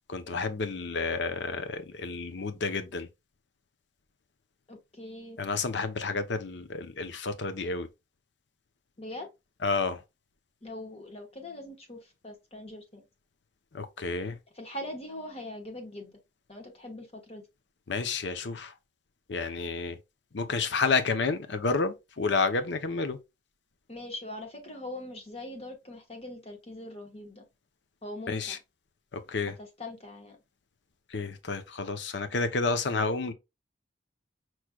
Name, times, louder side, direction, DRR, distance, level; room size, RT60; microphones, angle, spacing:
voice 1, 0.0-3.1 5.4-7.9 9.6-10.0 13.7-14.4 17.9-18.7 19.3-20.0 20.3-23.2 28.3-28.6 29.1-29.6 31.1-33.3, left 4 dB, 70° left, 0.7 m, -30 dB
voice 2, 4.7-5.4 9.0-9.3 10.6-13.0 14.5-16.2 16.5-17.5 23.9-27.4 28.0-28.6 29.5-30.4, left 1 dB, 35° left, 1.2 m, -42 dB
6.1 x 3.1 x 2.2 m
head